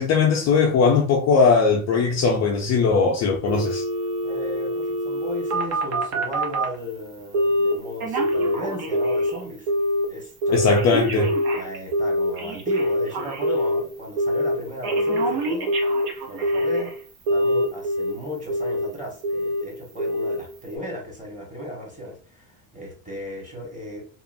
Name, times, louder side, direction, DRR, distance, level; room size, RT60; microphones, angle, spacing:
voice 1, 0.0-3.8 10.5-11.3, left 4 dB, 40° left, 0.4 m, -19 dB
Telephone, 3.5-6.7 7.3-7.7 8.0-9.4 9.7-10.1 10.4-13.8 14.2-14.6 14.8-16.9 17.3-18.1 18.5-18.9 19.2-19.6 20.0-20.4 20.7-20.8, equal, 75° right, 0.9 m, -24 dB
voice 2, 4.2-9.7 10.1-10.9 11.6-15.8 16.3-16.9 17.3-24.0, left 1 dB, 15° right, 1.3 m, -35 dB
2.9 x 2.4 x 2.5 m
cardioid pair, 120°, 47 cm